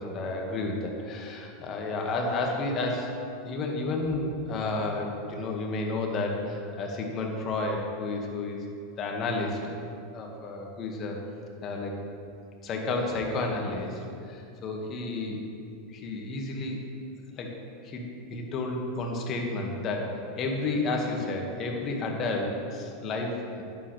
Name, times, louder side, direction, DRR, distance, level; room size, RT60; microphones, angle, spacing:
voice 1, 0.0-3.1 3.4-8.6 9.0-9.8 10.1-11.2 11.6-11.9 12.6-14.0 14.3-15.4 15.9-16.8 17.4-17.5 17.8-18.0 18.3-23.6, left 2 dB, 40° left, 1 dB, 1.8 m, -31 dB
11.5 x 9.0 x 3.3 m, 2.5 s
hypercardioid pair, 90°, 0 cm